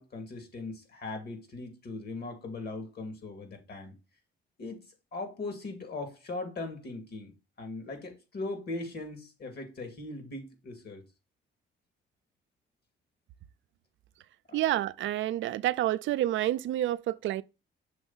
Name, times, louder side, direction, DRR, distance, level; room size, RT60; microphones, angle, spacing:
voice 1, 0.0-3.9 4.6-4.8 5.1-11.0 14.5-14.6, left 2 dB, 55° left, 2.4 m, -39 dB
voice 2, 14.5-17.4, right 13 dB, 75° right, 0.4 m, -29 dB
6.3 x 3.4 x 5.6 m
cardioid pair, 90°, 20 cm